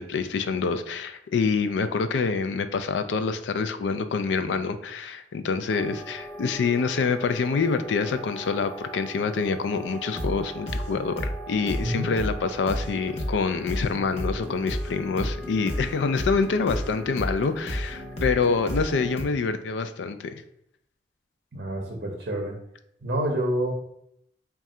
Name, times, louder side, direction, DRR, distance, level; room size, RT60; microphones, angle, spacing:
voice 1, 0.0-20.4, left 5 dB, 85° left, 10 dB, 0.4 m, -26 dB
sound 1, 5.7-19.2, right 1 dB, ahead, 0.4 m, -40 dB
sound 2, 10.2-10.4 10.7-10.9 11.2-11.4 11.7-11.9 12.2-12.4 12.7-12.9 13.2-13.4 13.7-19.2, equal, 35° left, 0.8 m, -32 dB
voice 2, 11.8-12.1 21.5-22.6 23.0-23.7, right 1 dB, 55° right, 0 dB, 0.6 m, -28 dB
3.6 x 2.3 x 4.2 m, 0.74 s
head